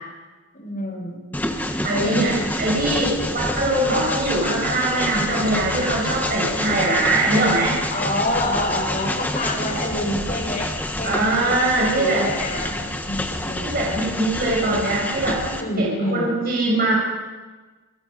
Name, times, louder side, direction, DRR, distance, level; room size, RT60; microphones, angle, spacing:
voice 1, 0.5-1.2 1.9-2.5 7.9-10.7 11.0-11.3 11.8-14.1 15.6-16.6, left 1 dB, 40° left, 0 dB, 5.8 m, -27 dB
Train, 1.3-15.6, left 1 dB, 10° left, 1.5 m, -28 dB
voice 2, 1.8-7.8 11.0-12.3 13.6-15.4 15.8-16.9, right 2 dB, 45° right, -4 dB, 7.1 m, -22 dB
28.0 x 22.0 x 5.4 m, 1.3 s
head